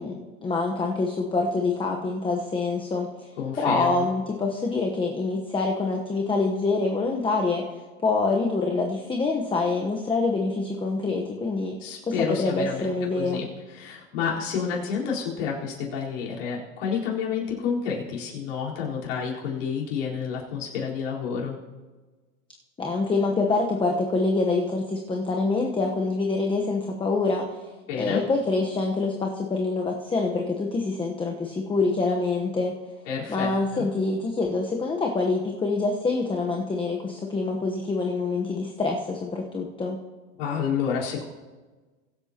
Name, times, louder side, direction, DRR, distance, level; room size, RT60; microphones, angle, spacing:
voice 1, 0.0-3.3 3.6-11.8 12.3-13.4 22.8-27.5 28.0-32.7 33.3-40.0, left 3 dB, 15° left, 1 dB, 1.1 m, -26 dB
voice 2, 3.4-4.1 11.8-21.6 27.9-28.2 33.1-33.8 40.4-41.2, left 6 dB, 65° left, -4 dB, 4.3 m, -29 dB
23.0 x 8.2 x 2.9 m, 1.3 s
hypercardioid pair, 115°, 39 cm